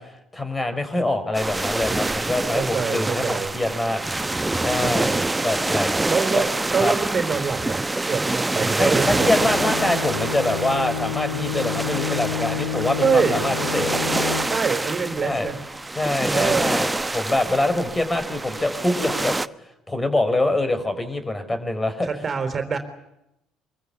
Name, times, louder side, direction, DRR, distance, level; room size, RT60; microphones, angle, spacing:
voice 1, 0.3-4.0 4.6-5.1 5.4-5.9 6.4-6.5 6.8-6.9 8.8-13.9 15.2-15.5 15.9-19.4 19.9-22.1, left 2 dB, 15° left, 9 dB, 5.3 m, -24 dB
sound 1, 1.3-19.5, right 2 dB, 15° right, 0.9 m, -26 dB
voice 2, 2.5-3.5 4.8-5.3 6.0-9.3 13.0-13.4 14.4-15.6 16.3-16.8 22.0-22.8, right 5 dB, 35° right, 7 dB, 4.0 m, -25 dB
Bowed string instrument, 8.8-14.8, left 7 dB, 75° left, 2.2 m, -30 dB
25.5 x 24.0 x 8.4 m, 0.84 s
hypercardioid pair, 60°, 0 cm